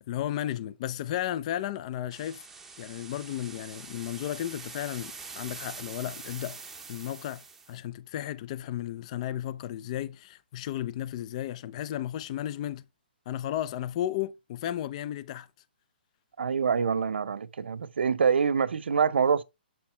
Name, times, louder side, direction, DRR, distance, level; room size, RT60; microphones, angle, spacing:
voice 1, 0.1-2.4 2.8-6.6 6.9-7.4 7.7-12.8 13.3-15.5, left 12 dB, 40° left, 0.4 m, -34 dB
sound 1, 2.1-7.8, right 4 dB, 5° right, 0.7 m, -44 dB
voice 2, 16.4-19.4, right 6 dB, 85° right, 0.5 m, -25 dB
7.4 x 4.4 x 3.3 m
hypercardioid pair, 150°, 6 cm